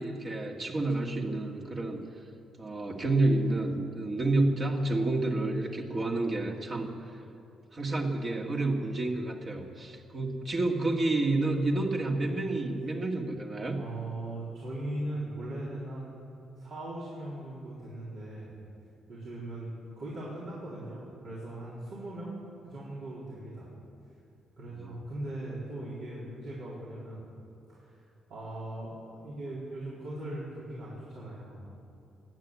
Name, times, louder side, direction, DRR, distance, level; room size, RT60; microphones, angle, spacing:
voice 1, 0.0-2.0 2.6-7.2 7.7-13.8 24.8-24.9, right 2 dB, 40° right, 1 dB, 2.0 m, -29 dB
voice 2, 13.8-16.1 16.6-18.5 19.1-22.3 22.6-23.7 24.6-27.2 27.7-28.0 28.3-31.7, right 1 dB, 65° right, -8 dB, 3.8 m, -39 dB
16.5 x 9.7 x 8.5 m, 2.8 s
cardioid pair, 90°, 0 cm